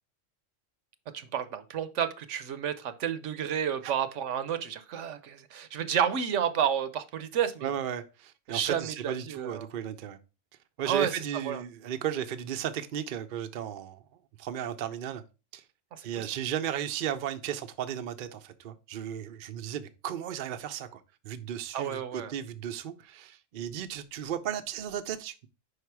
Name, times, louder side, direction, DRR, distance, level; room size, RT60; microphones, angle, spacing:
voice 1, 1.1-7.7 8.5-9.7 10.8-11.6 15.9-16.3 21.7-22.3, right 8 dB, 75° right, 1.0 m, -31 dB
voice 2, 7.6-10.2 10.8-14.0 14.4-15.2 15.5-15.6 16.0-25.5, right 9 dB, 55° right, 0.6 m, -35 dB
5.1 x 4.8 x 4.6 m
omnidirectional pair, 1.3 m